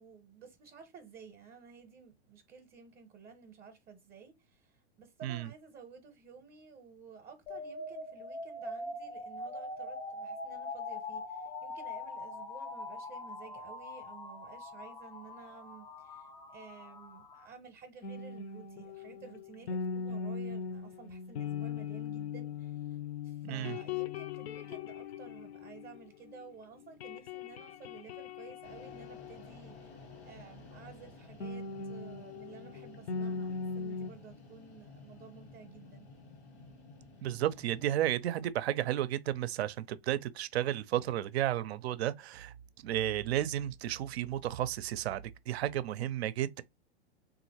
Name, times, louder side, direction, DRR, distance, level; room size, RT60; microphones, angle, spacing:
voice 1, 0.0-23.0 23.2-29.9 30.2-36.1, right 6 dB, 30° right, 0.7 m, -53 dB
sound 1, 7.5-17.5, left 2 dB, 15° left, 0.4 m, -43 dB
sound 2, 18.0-26.5 26.8-30.2 31.4-34.1, left 5 dB, 65° left, 0.5 m, -40 dB
voice 2, 23.4-23.8 37.2-42.5 42.8-46.6, right 12 dB, 75° right, 0.5 m, -33 dB
sound 3, 28.6-38.0, left 3 dB, 80° left, 1.3 m, -53 dB
3.0 x 2.5 x 2.8 m
hypercardioid pair, 110°, 32 cm